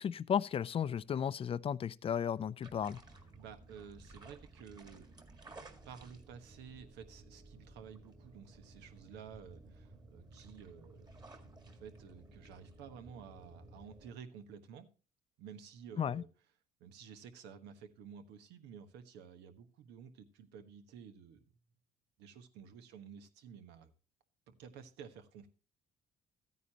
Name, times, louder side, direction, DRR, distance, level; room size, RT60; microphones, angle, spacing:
voice 1, 0.0-3.0 16.0-16.2, left 8 dB, 35° left, 0.4 m, -34 dB
sound 1, 2.6-14.1, right 2 dB, 25° right, 1.8 m, -56 dB
voice 2, 3.4-5.1 5.8-11.1 11.7-14.9 15.4-16.3 16.8-21.4 22.2-23.9 24.5-25.5, right 7 dB, 90° right, 1.3 m, -52 dB
13.5 x 9.4 x 2.9 m
cardioid pair, 110°, 17 cm